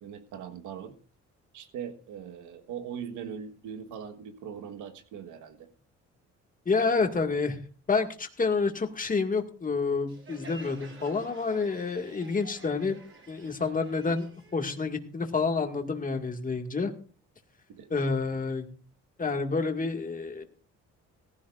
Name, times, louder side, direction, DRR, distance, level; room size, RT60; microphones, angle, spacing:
voice 1, 0.0-0.9 1.5-5.7 17.7-17.9, right 8 dB, 90° right, 1.5 m, -40 dB
voice 2, 6.7-7.6 7.9-13.0 13.3-14.3 14.5-16.9 17.9-18.7 19.2-20.4, left 4 dB, 30° left, 2.0 m, -28 dB
Crowd, 10.1-15.5, right 3 dB, 45° right, 5.3 m, -50 dB
17.5 x 15.0 x 2.5 m
cardioid pair, 95°, 30 cm